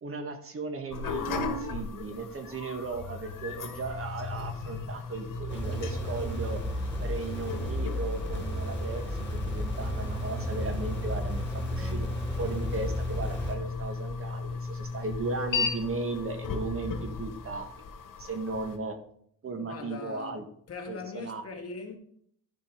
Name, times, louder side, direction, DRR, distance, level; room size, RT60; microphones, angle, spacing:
voice 1, 0.0-6.6 7.0-11.4 11.7-12.1 12.4-17.7 18.2-19.0 19.4-20.5 20.9-21.4, right 3 dB, 45° right, 1.7 m, -36 dB
sound 1, 0.9-18.8, left 4 dB, 85° left, 1.7 m, -36 dB
sound 2, 5.5-13.6, equal, 5° left, 4.4 m, -33 dB
voice 2, 19.5-20.4 20.7-22.0, left 4 dB, 50° left, 2.1 m, -40 dB
12.0 x 5.2 x 5.0 m
cardioid pair, 115°, 32 cm